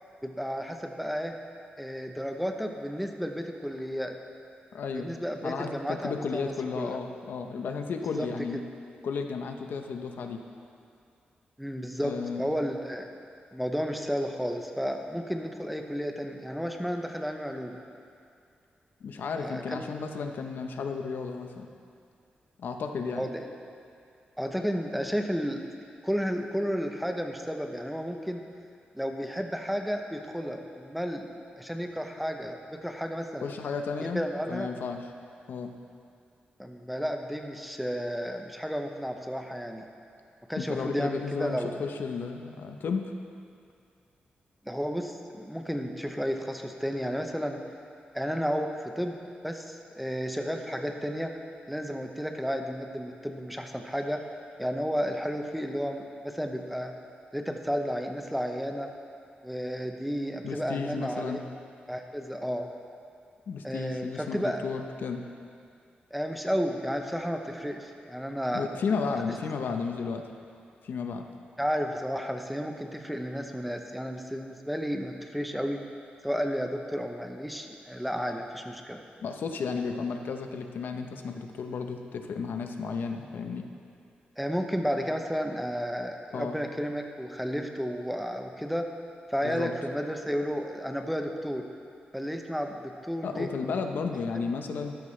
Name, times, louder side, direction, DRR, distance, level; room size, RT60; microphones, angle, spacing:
voice 1, 0.2-1.4 1.8-4.2 4.9-7.0 8.2-8.3 11.6-13.1 13.5-17.8 19.4-19.9 23.1-23.4 24.4-25.6 26.0-28.4 28.9-33.5 34.0-34.7 36.6-39.9 40.5-41.8 44.7-47.6 48.1-49.2 49.4-51.3 51.7-54.2 54.6-56.9 57.3-58.9 59.4-61.4 61.9-62.7 63.6-64.6 66.1-68.7 71.6-75.8 76.2-79.0 84.4-88.9 89.3-91.7 92.1-93.5 94.3-94.4, equal, ahead, 4 dB, 0.8 m, -32 dB
voice 2, 4.7-5.1 5.4-8.6 9.0-10.4 12.0-12.6 19.0-21.7 22.6-23.3 33.4-34.2 34.5-35.0 35.5-35.7 40.6-43.1 60.4-61.4 63.5-65.2 68.5-70.2 70.8-71.3 79.2-83.7 86.3-86.6 89.4-89.7 93.2-95.0, left 5 dB, 75° left, 5 dB, 0.8 m, -33 dB
13.5 x 13.0 x 3.3 m, 2.4 s
wide cardioid pair, 115°, 3 cm